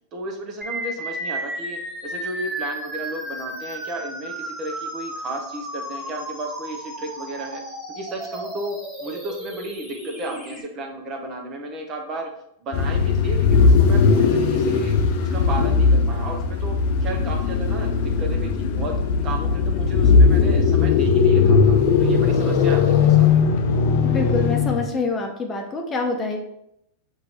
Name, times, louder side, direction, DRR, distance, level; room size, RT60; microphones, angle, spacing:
voice 1, 0.1-7.6 7.9-12.3 12.6-18.9 19.2-23.3, right 1 dB, 35° right, 2 dB, 0.9 m, -33 dB
sound 1, 0.6-10.6, right 1 dB, ahead, 1.4 m, -33 dB
sound 2, 12.7-24.9, left 5 dB, 60° left, 0.6 m, -18 dB
voice 2, 24.0-26.4, left 3 dB, 25° left, 2 dB, 0.7 m, -26 dB
6.0 x 2.7 x 3.0 m, 0.78 s
hypercardioid pair, 115°, 0 cm